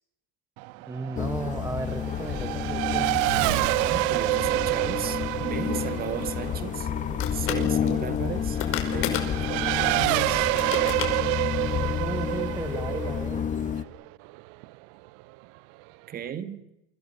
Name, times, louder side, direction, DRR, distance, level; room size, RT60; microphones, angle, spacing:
Race car auto racing / Accelerating revving vroom, 0.6-14.6, right 21 dB, 55° right, 0.8 m, -28 dB
voice 1, 0.9-3.3 5.8-5.9 11.8-13.5, right 3 dB, 10° right, 9 dB, 1.2 m, -35 dB
sound 1, 1.2-13.8, left 9 dB, 25° left, 1.2 m, -30 dB
voice 2, 3.8-6.9 7.3-10.5 16.1-16.6, right 9 dB, 30° right, 11 dB, 2.0 m, -35 dB
sound 2, 6.2-11.7, left 10 dB, 45° left, 5.4 m, -35 dB
29.0 x 25.0 x 5.7 m, 0.90 s
supercardioid pair, 135°, 31 cm